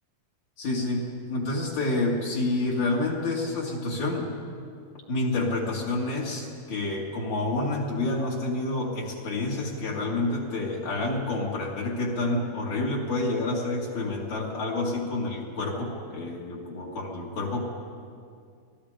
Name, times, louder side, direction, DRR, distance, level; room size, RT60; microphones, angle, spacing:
voice 1, 0.6-4.3 5.1-17.6, left 2 dB, 60° left, -4 dB, 3.5 m, -28 dB
28.5 x 19.5 x 5.1 m, 2.3 s
omnidirectional pair, 3.9 m